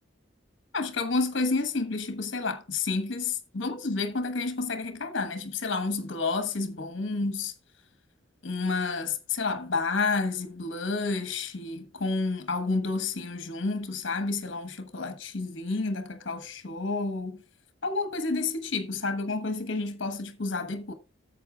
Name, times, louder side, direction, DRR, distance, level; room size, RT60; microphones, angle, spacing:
voice 1, 0.7-7.5 8.4-17.4 17.8-20.9, left 3 dB, 65° left, 1.2 m, -30 dB
13.0 x 7.5 x 2.3 m
head